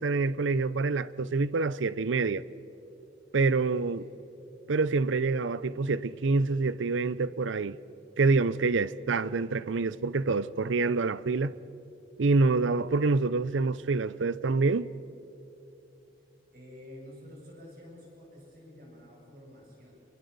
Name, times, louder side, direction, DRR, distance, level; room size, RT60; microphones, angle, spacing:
voice 1, 0.0-2.4 3.3-4.0 4.7-7.8 8.2-11.5 12.2-14.9, right 3 dB, 85° right, 0.6 m, -26 dB
voice 2, 3.8-4.2 16.5-19.9, left 1 dB, 50° right, 7.4 m, -49 dB
27.0 x 23.5 x 6.8 m
head